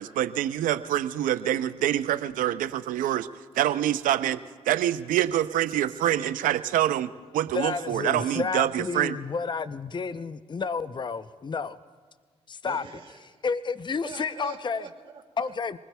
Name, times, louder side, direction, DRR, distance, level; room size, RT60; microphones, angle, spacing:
voice 1, 0.0-3.3 3.5-4.4 4.7-9.1, right 12 dB, 75° right, 13 dB, 0.6 m, -26 dB
voice 2, 7.5-11.8 12.5-12.9 13.4-14.9 15.4-15.8, left 5 dB, 35° left, 13 dB, 0.6 m, -31 dB
voice 3, 12.6-13.4 14.0-15.5, right 6 dB, 40° right, -8 dB, 3.3 m, -44 dB
25.0 x 20.0 x 2.3 m, 1.5 s
hypercardioid pair, 50°, 14 cm